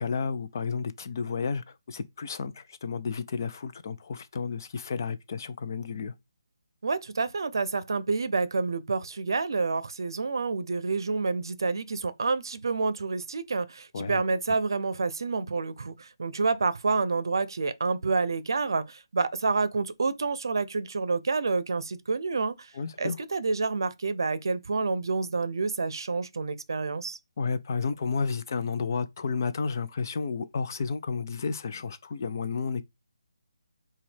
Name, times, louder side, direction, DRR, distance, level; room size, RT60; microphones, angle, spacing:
voice 1, 0.0-6.1 13.9-14.3 22.7-23.2 27.4-32.8, left 5 dB, 45° left, 0.5 m, -32 dB
voice 2, 6.8-22.7 23.0-27.2, right 4 dB, 65° right, 0.6 m, -28 dB
6.0 x 2.4 x 3.4 m
figure-of-eight pair, 155°, 2 cm